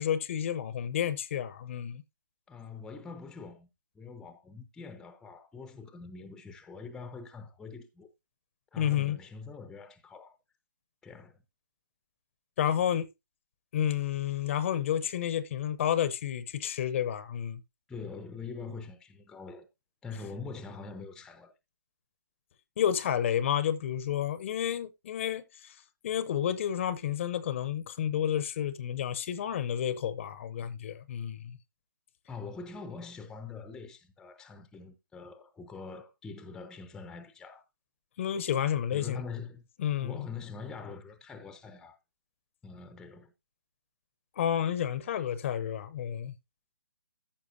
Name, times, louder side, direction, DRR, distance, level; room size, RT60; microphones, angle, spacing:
voice 1, 0.0-2.0 8.8-9.2 12.6-13.1 13.7-17.6 22.8-25.7 26.0-31.6 38.2-39.2 39.8-40.3 44.4-46.3, left 9 dB, 35° left, 0.8 m, -30 dB
voice 2, 2.5-3.7 3.9-8.1 8.7-10.4 11.0-11.4 17.9-19.7 20.0-21.5 32.3-37.6 38.9-39.7 40.0-42.0 42.6-43.3, left 4 dB, 5° left, 0.7 m, -44 dB
14.5 x 5.9 x 2.7 m
figure-of-eight pair, 145°, 11 cm